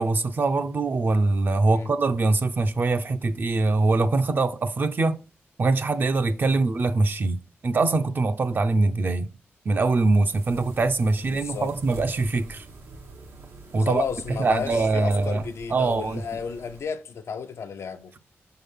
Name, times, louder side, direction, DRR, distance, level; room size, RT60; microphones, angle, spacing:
voice 1, 0.0-5.2 5.6-9.3 9.6-12.6 13.7-14.0 14.4-15.4 15.7-16.2, right 3 dB, 45° right, 0.7 m, -23 dB
sound 1, 10.3-16.8, right 3 dB, 90° right, 1.7 m, -45 dB
voice 2, 11.3-11.7 13.8-18.1, left 6 dB, 85° left, 0.7 m, -32 dB
6.2 x 3.9 x 5.5 m
wide cardioid pair, 100°, 5 cm